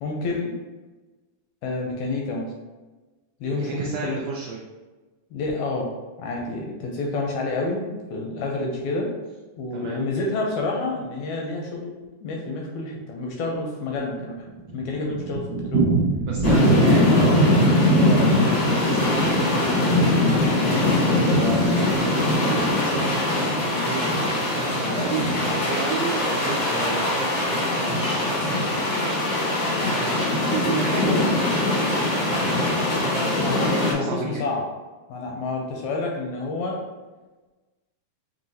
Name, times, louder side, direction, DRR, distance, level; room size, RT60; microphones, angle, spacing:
voice 1, 0.0-0.5 1.6-2.5 3.4-4.2 5.3-5.9 6.2-9.1 9.6-11.9 12.2-15.9 20.7-21.0 33.4-34.6 35.1-36.8, left 3 dB, 80° left, 0 dB, 1.8 m, -29 dB
voice 2, 3.4-4.6 9.7-10.0 16.2-20.1 21.1-28.7 29.9-31.2 32.0-34.4, right 5 dB, 85° right, -2 dB, 1.4 m, -32 dB
Thunder, 13.8-20.1 20.4-20.5 20.8-20.9 21.1-21.2 21.8-22.1, right 4 dB, 55° right, 1.8 m, -28 dB
sound 1, 16.4-33.9, left 1 dB, 60° left, 1.2 m, -21 dB
5.4 x 2.8 x 2.7 m, 1.2 s
omnidirectional pair, 3.6 m